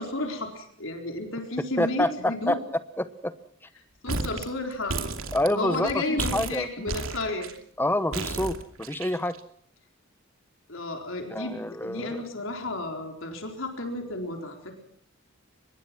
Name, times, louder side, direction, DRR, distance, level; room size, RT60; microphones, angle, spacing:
voice 1, 0.0-2.6 4.0-5.0 5.5-7.5 10.7-14.8, left 2 dB, 70° left, 3 dB, 4.2 m, -32 dB
voice 2, 1.8-2.6 3.0-3.3 5.3-6.9 7.8-9.4 11.3-12.1, left 1 dB, 10° left, 13 dB, 1.0 m, -27 dB
sound 1, 4.1-4.5 4.7-5.9 6.2-7.6 8.1-9.4, right 3 dB, 75° right, 2.8 m, -32 dB
24.5 x 21.5 x 6.0 m, 0.63 s
head